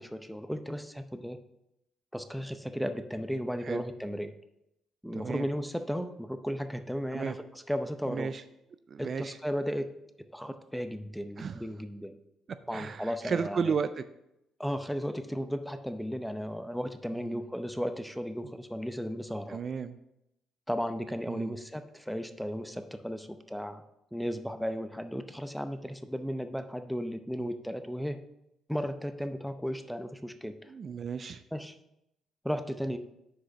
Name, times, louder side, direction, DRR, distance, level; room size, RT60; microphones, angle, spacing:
voice 1, 0.0-1.4 2.1-4.3 5.0-8.3 9.0-10.0 10.3-12.2 12.7-13.7 14.6-19.6 20.7-23.8 24.1-28.2 28.7-30.7 31.5-31.7 32.4-33.0, equal, ahead, 9 dB, 0.6 m, -35 dB
voice 2, 5.1-5.4 7.1-7.4 8.1-8.4 8.9-9.4 11.4-11.6 12.7-14.0 17.2-17.4 19.5-20.0 21.3-21.5 30.7-31.4, right 6 dB, 45° right, 12 dB, 0.4 m, -33 dB
6.5 x 4.9 x 5.7 m, 0.85 s
cardioid pair, 85°, 0 cm